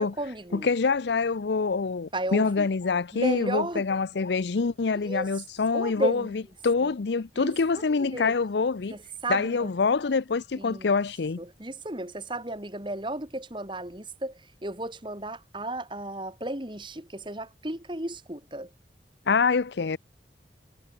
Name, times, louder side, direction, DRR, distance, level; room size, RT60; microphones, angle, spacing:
voice 1, 0.0-0.7 2.1-2.7 3.1-3.9 4.9-5.3 5.7-6.4 6.8-6.9 7.4-8.4 8.9-9.7 10.5-10.9 11.4-18.7, right 1 dB, 25° right, 3.2 m, -34 dB
voice 2, 0.5-6.2 6.6-8.9 9.3-11.4 19.3-20.0, left 4 dB, 75° left, 0.6 m, -25 dB
head